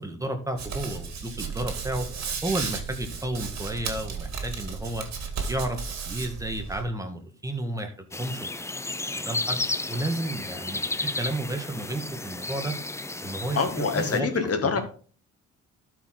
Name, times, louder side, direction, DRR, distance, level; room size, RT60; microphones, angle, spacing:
voice 1, 0.0-2.1 2.4-5.0 5.5-8.6 9.1-9.6 9.9-12.7 13.2-13.6 13.9-14.3, right 1 dB, 10° right, 5 dB, 1.6 m, -32 dB
Hands, 0.6-6.8, right 5 dB, 60° right, 2.0 m, -34 dB
sound 1, 8.1-14.2, left 2 dB, 10° left, 0.5 m, -33 dB
voice 2, 13.5-14.8, left 5 dB, 50° left, 7 dB, 1.8 m, -25 dB
12.0 x 4.9 x 3.8 m, 0.42 s
cardioid pair, 90°, 30 cm